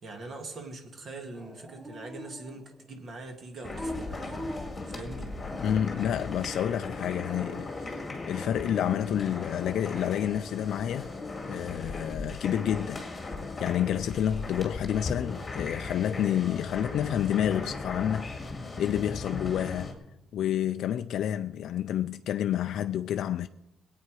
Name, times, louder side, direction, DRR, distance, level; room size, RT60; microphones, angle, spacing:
voice 1, 0.0-4.4 4.9-5.3, right 2 dB, 40° right, 2.0 m, -42 dB
Dog, 1.3-2.8 3.6-6.0, equal, 5° right, 0.8 m, -42 dB
sound 1, 3.6-19.9, left 3 dB, 15° left, 2.0 m, -37 dB
voice 2, 5.6-11.1 11.4-13.0 13.6-18.3 18.8-19.9 20.3-23.5, left 10 dB, 60° left, 0.4 m, -29 dB
22.0 x 8.6 x 4.8 m
cardioid pair, 170°, 0 cm